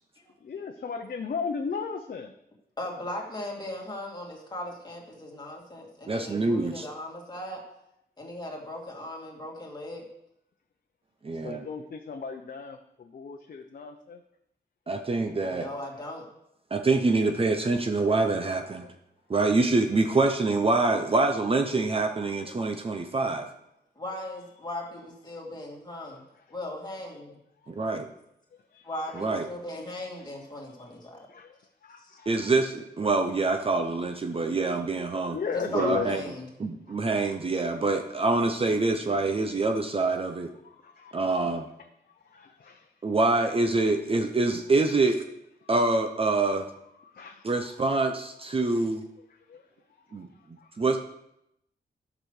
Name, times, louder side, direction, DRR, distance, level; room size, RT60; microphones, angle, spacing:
voice 1, 0.4-2.3 11.4-14.2 24.1-24.2 26.1-26.4 27.6-27.7 28.5-29.1 29.9-30.1 31.1-32.3 34.3-34.8 35.1-36.1 36.9-37.1 40.6-41.2 42.1-42.9 44.9-45.1 45.6-45.7 47.0-47.5 48.5-48.9 49.5-49.7 50.0-50.8, left 5 dB, 55° left, 4 dB, 0.8 m, -37 dB
voice 2, 2.8-7.6 8.2-10.0 15.5-16.2 24.0-26.2 26.5-27.3 28.8-29.1 29.5-31.3 35.5-36.4, left 1 dB, 25° left, -2 dB, 2.5 m, -38 dB
voice 3, 6.1-6.9 11.2-11.7 14.9-15.7 16.7-18.9 19.3-23.5 27.7-28.1 29.2-29.5 32.3-35.4 35.7-36.2 36.6-40.5 41.1-41.7 43.0-45.2 45.7-46.7 47.4-49.0 50.1-50.3 50.8-51.0, right 3 dB, 30° right, 5 dB, 0.7 m, -25 dB
12.0 x 6.2 x 6.5 m, 0.81 s
wide cardioid pair, 170°, 18 cm